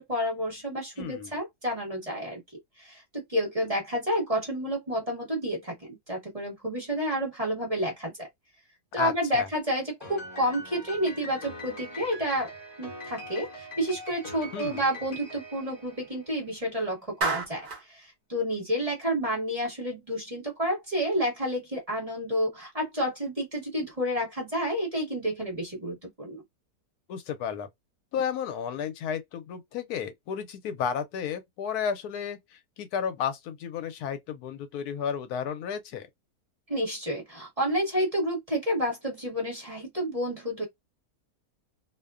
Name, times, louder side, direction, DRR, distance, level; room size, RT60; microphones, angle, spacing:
voice 1, 0.0-2.4 2.8-8.3 8.9-12.5 12.8-26.4 36.7-40.6, equal, 25° right, 1.0 m, -30 dB
voice 2, 1.0-1.3 9.0-9.5 14.5-14.8 27.1-27.7 28.1-36.1, left 7 dB, 80° left, 1.1 m, -33 dB
Piano, 10.0-16.5, equal, 40° left, 0.9 m, -42 dB
Clapping, 17.2-17.9, right 3 dB, 45° right, 0.6 m, -29 dB
2.6 x 2.1 x 2.3 m
omnidirectional pair, 1.6 m